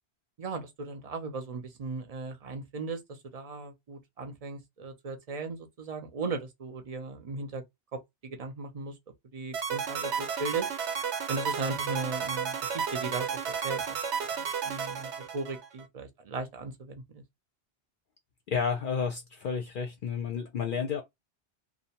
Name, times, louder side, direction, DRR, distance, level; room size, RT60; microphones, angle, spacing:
voice 1, 0.4-7.6 7.9-8.9 9.3-10.7 11.3-14.0 14.3-17.2, right 3 dB, 45° right, 0.5 m, -37 dB
sound 1, 9.5-15.8, right 7 dB, 90° right, 1.0 m, -32 dB
voice 2, 18.5-21.0, left 6 dB, 60° left, 0.6 m, -31 dB
2.6 x 2.1 x 2.8 m
omnidirectional pair, 1.1 m